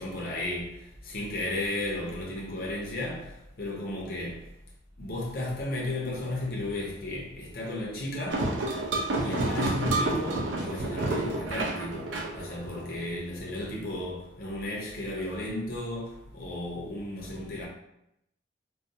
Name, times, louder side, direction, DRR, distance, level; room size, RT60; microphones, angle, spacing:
voice 1, 0.0-4.5 5.0-8.6 9.2-17.7, left 1 dB, 50° left, 0.6 m, -34 dB
sound 1, 8.3-13.2, right 2 dB, 75° right, 0.4 m, -30 dB
2.3 x 2.2 x 2.6 m
head